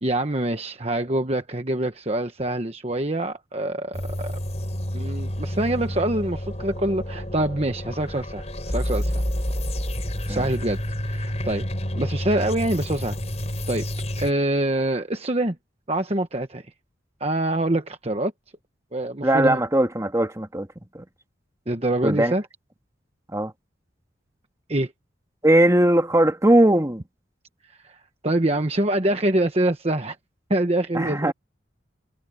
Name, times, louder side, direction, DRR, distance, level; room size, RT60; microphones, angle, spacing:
voice 1, 0.0-4.3 4.9-9.2 10.3-10.8 11.1-11.6 12.0-13.2 13.7-13.9 14.2-15.6 15.9-16.6 17.2-18.3 18.9-19.6 21.7-22.4 24.7-24.9 27.8-30.2 30.5-31.3, right 1 dB, 35° right, 1.2 m, -25 dB
sound 1, 3.9-14.3, equal, 35° left, 6.4 m, -29 dB
voice 2, 19.2-20.7 20.9-21.0 22.0-22.3 23.3-23.5 25.4-27.0 30.9-31.3, right 1 dB, 15° right, 1.8 m, -19 dB
head